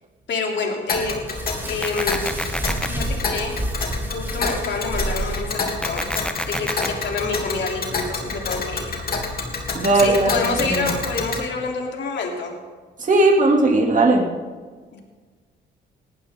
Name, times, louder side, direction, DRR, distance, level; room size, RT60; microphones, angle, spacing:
voice 1, 0.3-1.2 1.7-2.3 2.9-3.6 4.1-6.0 6.5-8.9 9.9-12.5 14.9-15.0, left 4 dB, 65° left, 0 dB, 3.5 m, -27 dB
Tick, 0.9-11.4, left 4 dB, 50° left, 3.1 m, -28 dB
sound 1, 1.3-6.0, right 1 dB, 10° right, 4.2 m, -29 dB
sound 2, 1.8-2.9 5.8-6.9, left 1 dB, 5° left, 1.0 m, -28 dB
voice 2, 9.7-10.4 10.6-10.9 13.0-14.3, right 2 dB, 40° right, 1 dB, 2.9 m, -17 dB
19.5 x 14.5 x 3.8 m, 1.5 s
cardioid pair, 90°, 20 cm